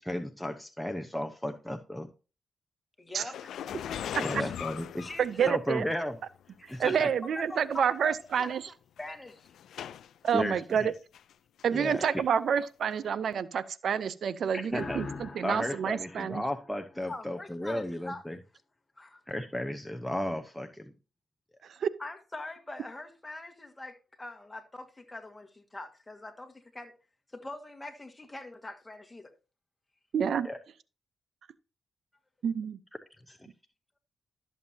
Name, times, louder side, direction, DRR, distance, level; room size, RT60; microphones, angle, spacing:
voice 1, 0.0-2.1 4.2-5.1 5.4-6.2 6.7-7.1 10.3-10.9 11.7-12.2 14.5-15.0 15.4-18.4 19.3-20.9 30.4-30.6 33.3-33.5, left 1 dB, 5° left, 0.9 m, -34 dB
voice 2, 3.0-3.4 4.4-4.5 5.0-5.5 6.7-9.5 12.0-12.1 17.1-18.2 19.0-19.2 22.0-26.9 27.3-29.3, left 2 dB, 20° left, 1.7 m, -43 dB
sound 1, 3.3-5.9 6.7-6.8 7.7-7.8 8.1-8.4 9.0-10.3 10.8-11.3 11.6-11.7 12.9-13.0, left 9 dB, 80° left, 0.4 m, -39 dB
voice 3, 5.2-5.8 6.8-8.6 10.2-10.9 11.6-16.4 21.8-21.9 30.1-30.5 32.4-32.8, right 7 dB, 70° right, 0.5 m, -28 dB
sound 2, 14.7-17.4, left 4 dB, 45° left, 1.7 m, -43 dB
12.5 x 7.2 x 2.7 m
cardioid pair, 60°, 0 cm